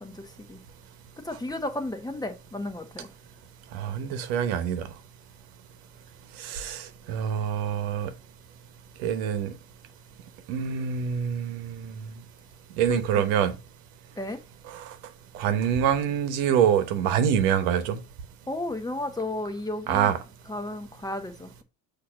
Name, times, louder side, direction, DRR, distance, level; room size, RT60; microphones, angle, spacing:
voice 1, 1.2-3.1 12.9-13.2 14.2-14.4 18.5-20.1 20.5-21.6, left 1 dB, 10° left, 1.2 m, -33 dB
voice 2, 3.7-4.9 6.4-8.1 9.0-9.5 10.5-12.0 12.8-13.5 14.7-14.9 15.3-18.0 19.9-20.2, right 8 dB, 90° right, 1.0 m, -25 dB
6.4 x 2.8 x 5.7 m
supercardioid pair, 80°, 40 cm